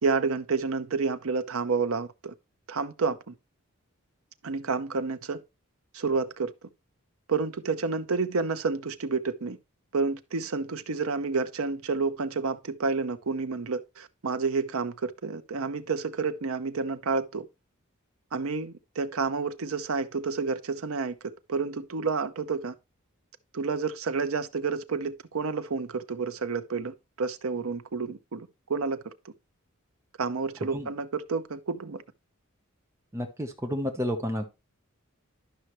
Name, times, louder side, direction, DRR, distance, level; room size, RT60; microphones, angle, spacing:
voice 1, 0.0-2.3 2.7-3.3 4.4-5.4 5.9-6.7 7.3-9.6 9.9-17.5 18.3-22.7 23.5-29.3 30.2-32.0, right 4 dB, 80° right, 0.7 m, -30 dB
voice 2, 33.1-34.4, equal, 15° right, 0.9 m, -30 dB
11.5 x 5.6 x 3.1 m
head